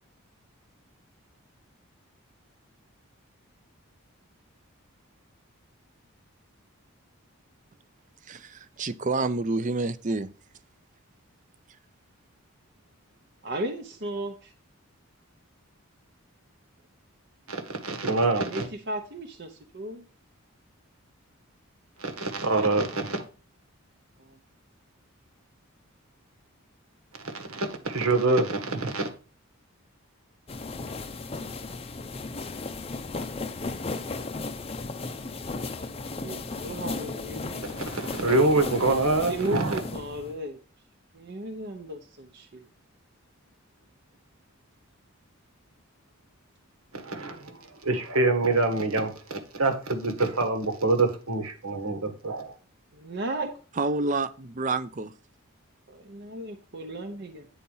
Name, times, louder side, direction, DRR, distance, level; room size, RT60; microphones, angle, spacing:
voice 1, 8.3-10.3 53.8-55.1, right 3 dB, 35° right, 0.5 m, -28 dB
voice 2, 13.4-14.5 18.5-20.0 24.2-24.4 36.2-38.1 39.2-40.6 41.1-42.6 52.9-53.5 55.9-57.5, right 1 dB, 50° right, 0.9 m, -35 dB
voice 3, 17.5-18.6 22.0-23.2 27.2-29.1 37.8-39.8 46.9-47.5 47.8-52.5, right 2 dB, 80° right, 1.6 m, -26 dB
sound 1, 30.5-40.4, left 3 dB, 25° left, 0.5 m, -35 dB
9.4 x 4.1 x 5.6 m
head